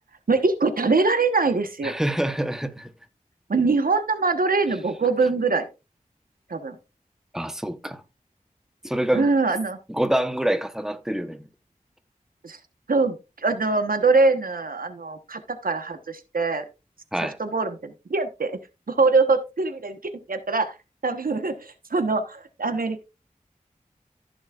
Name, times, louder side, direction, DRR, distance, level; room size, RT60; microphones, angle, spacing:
voice 1, 0.3-2.0 3.5-5.7 6.5-6.7 9.1-9.8 12.4-12.6 12.9-13.2 13.4-16.6 17.2-18.5 18.9-20.0 20.3-20.7 21.0-23.0, right 3 dB, 85° right, 1.2 m, -23 dB
voice 2, 1.8-2.9 7.3-8.0 8.8-9.3 9.9-11.5 17.1-17.4, right 1 dB, 5° right, 1.0 m, -26 dB
15.0 x 6.3 x 2.4 m
wide cardioid pair, 60°, 14 cm